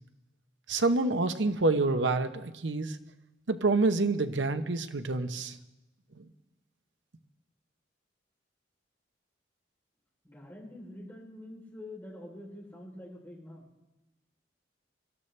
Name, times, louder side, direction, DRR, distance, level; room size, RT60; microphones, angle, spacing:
voice 1, 0.7-3.0 3.5-5.6 6.2-6.3, right 3 dB, 85° right, 9 dB, 0.9 m, -27 dB
voice 2, 10.2-13.6, left 1 dB, 10° left, -3 dB, 3.5 m, -46 dB
23.0 x 13.5 x 3.3 m, 1.0 s
head